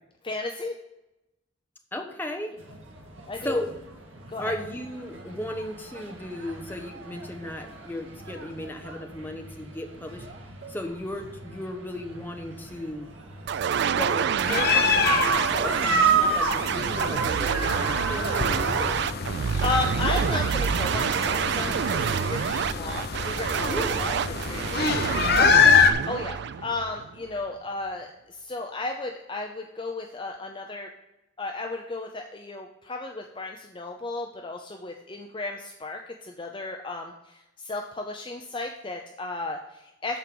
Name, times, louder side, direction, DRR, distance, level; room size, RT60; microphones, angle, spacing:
voice 1, 0.2-0.8 3.3-3.6 4.3-4.5 19.6-25.4 26.1-30.9 31.4-40.2, left 3 dB, 25° left, 3 dB, 0.6 m, -34 dB
voice 2, 1.9-2.5 3.4-3.7 4.4-10.3 10.7-13.1 13.9-19.0 23.7-24.1 25.4-25.9, left 1 dB, 10° left, 3 dB, 1.0 m, -35 dB
sound 1, 2.6-21.9, right 4 dB, 85° right, 2.0 m, -33 dB
sound 2, 13.5-27.3, right 7 dB, 60° right, 0.3 m, -27 dB
sound 3, 14.4-25.9, left 6 dB, 55° left, 0.8 m, -26 dB
13.5 x 4.6 x 5.3 m, 0.93 s
head